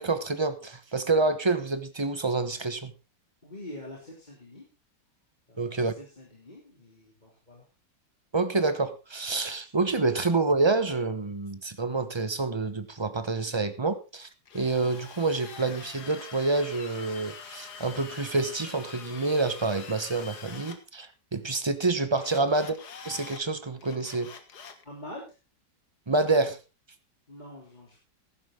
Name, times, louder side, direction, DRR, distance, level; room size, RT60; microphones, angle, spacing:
voice 1, 0.0-2.9 5.6-5.9 8.3-14.3 14.5-22.7 23.0-24.3 26.1-26.6, right 3 dB, 20° right, 0.8 m, -27 dB
voice 2, 3.4-4.6 5.5-7.7 24.8-25.4 27.3-28.0, left 1 dB, 25° left, 3.3 m, -45 dB
Drill, 14.5-20.8 22.2-23.4 23.8-24.8, left 6 dB, 60° left, 2.1 m, -45 dB
15.0 x 12.0 x 3.8 m
omnidirectional pair, 2.0 m